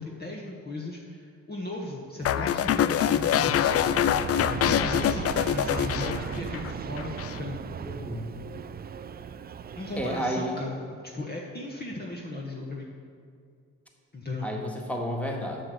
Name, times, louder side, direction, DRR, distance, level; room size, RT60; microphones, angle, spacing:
voice 1, 0.0-7.6 9.8-12.9 14.1-14.5, left 2 dB, 25° left, -2 dB, 1.3 m, -37 dB
sound 1, 2.2-6.7 7.0-7.4, left 10 dB, 45° left, 0.4 m, -25 dB
Aircraft, 2.2-10.2, right 7 dB, 25° right, 0.4 m, -36 dB
voice 2, 7.8-8.3 10.0-10.8 14.4-15.6, equal, 5° left, 0 dB, 1.8 m, -31 dB
7.7 x 6.2 x 6.9 m, 2.4 s
supercardioid pair, 65°, 36 cm